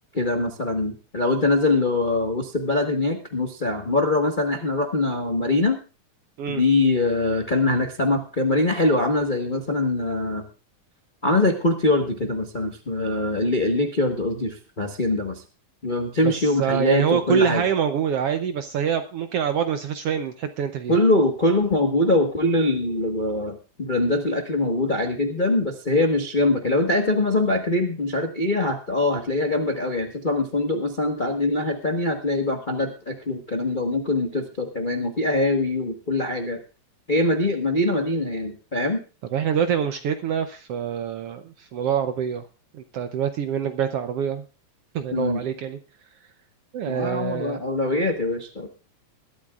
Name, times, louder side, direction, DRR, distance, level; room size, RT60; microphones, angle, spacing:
voice 1, 0.1-5.8 6.5-10.4 11.2-15.4 15.8-17.6 20.9-36.6 37.1-39.0 45.1-45.4 46.9-48.7, left 2 dB, 50° left, 3 dB, 0.5 m, -23 dB
voice 2, 16.2-21.0 39.3-42.4 42.7-44.4 44.9-45.8 46.7-47.6, right 8 dB, 70° right, 8 dB, 1.5 m, -25 dB
21.5 x 12.5 x 2.4 m, 0.34 s
omnidirectional pair, 3.5 m